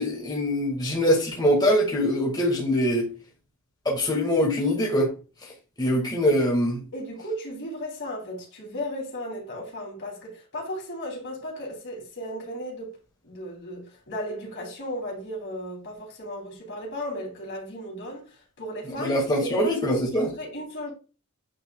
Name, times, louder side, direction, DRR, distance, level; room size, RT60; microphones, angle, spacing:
voice 1, 0.0-3.1 3.9-5.1 5.8-6.8 19.0-20.3, equal, 20° left, 2.0 m, -23 dB
voice 2, 6.9-12.9 13.2-18.3 18.6-20.9, equal, 60° left, 3.4 m, -35 dB
9.2 x 4.4 x 2.3 m
head